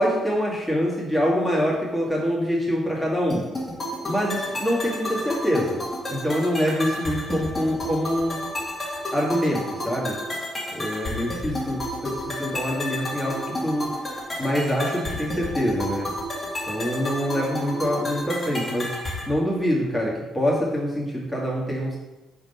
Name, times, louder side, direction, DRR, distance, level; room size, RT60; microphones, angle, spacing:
voice 1, 0.0-3.5 4.0-5.8 6.1-8.4 9.1-10.2 10.7-13.9 14.4-16.1 16.6-19.0 19.3-22.0, equal, ahead, -4 dB, 2.1 m, -25 dB
sound 1, 3.3-19.3, left 1 dB, 25° left, 1.9 m, -31 dB
4.9 x 3.8 x 5.6 m, 1.0 s
cardioid pair, 90°, 0 cm